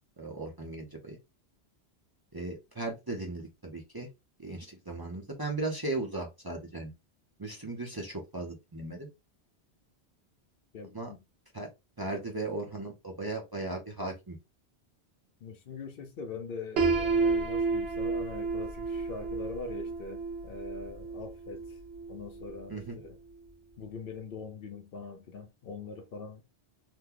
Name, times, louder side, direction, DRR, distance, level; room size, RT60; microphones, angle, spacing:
voice 1, 0.2-1.2 2.3-4.1 4.4-6.9 7.4-9.1 10.9-11.1 11.5-11.7 12.0-14.4 22.7-23.0, right 2 dB, 25° right, 0.6 m, -37 dB
voice 2, 10.7-11.2 15.4-21.8 22.1-23.2 23.8-26.4, left 4 dB, 65° left, 0.7 m, -42 dB
Piano, 16.8-22.6, right 4 dB, 70° right, 0.9 m, -31 dB
2.9 x 2.2 x 3.5 m
omnidirectional pair, 1.1 m